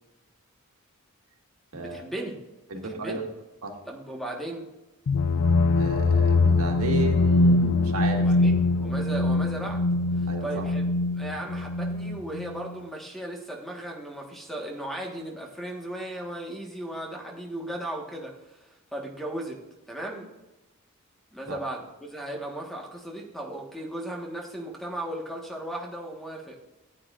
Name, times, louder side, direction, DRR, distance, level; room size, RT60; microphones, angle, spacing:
voice 1, 1.7-2.4 2.7-3.2 3.8-4.7 8.1-9.8 10.1-10.8 11.2-19.6 19.9-20.3 21.3-26.6, right 1 dB, ahead, 0 dB, 1.4 m, -36 dB
voice 2, 2.7-3.2 3.6-3.8 5.8-8.3 10.3-10.6 21.5-21.6, right 1 dB, 80° right, 2 dB, 1.7 m, -32 dB
sound 1, 5.1-12.7, left 2 dB, 75° left, 0.5 m, -23 dB
14.5 x 9.2 x 2.5 m, 1.0 s
head